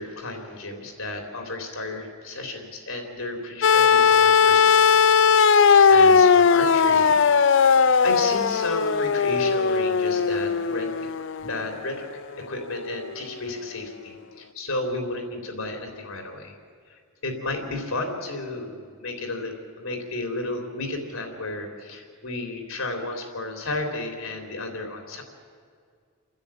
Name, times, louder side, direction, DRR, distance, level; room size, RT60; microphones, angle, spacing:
voice 1, 0.0-5.3 5.9-7.2 7.5-10.9 11.4-12.1 12.4-16.5 16.9-25.2, left 2 dB, 75° left, 3 dB, 3.6 m, -33 dB
sound 1, 3.6-11.7 13.0-13.1, left 6 dB, 55° left, 0.5 m, -18 dB
29.5 x 10.5 x 8.9 m, 2.1 s
head